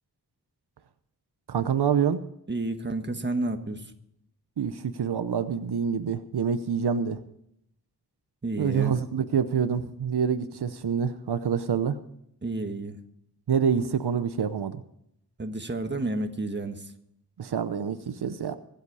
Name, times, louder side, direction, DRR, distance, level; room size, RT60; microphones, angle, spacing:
voice 1, 1.5-2.2 4.6-7.2 8.6-12.0 13.5-14.8 17.4-18.6, right 7 dB, 85° right, 11 dB, 0.8 m, -26 dB
voice 2, 2.5-3.9 8.4-9.0 12.4-13.0 15.4-16.9, right 2 dB, 30° right, 6 dB, 1.5 m, -30 dB
24.0 x 8.2 x 4.8 m, 0.75 s
wide cardioid pair, 105°, 38 cm